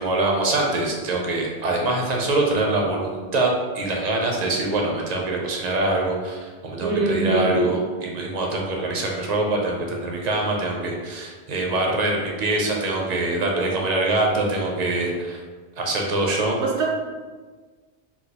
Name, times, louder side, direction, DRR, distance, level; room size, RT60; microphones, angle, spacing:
voice 1, 0.0-15.4 15.8-16.6, right 2 dB, 50° right, 0 dB, 0.5 m, -24 dB
voice 2, 6.8-7.7 16.6-16.9, right 2 dB, 85° right, -1 dB, 1.0 m, -23 dB
3.9 x 2.3 x 2.8 m, 1.4 s
omnidirectional pair, 1.2 m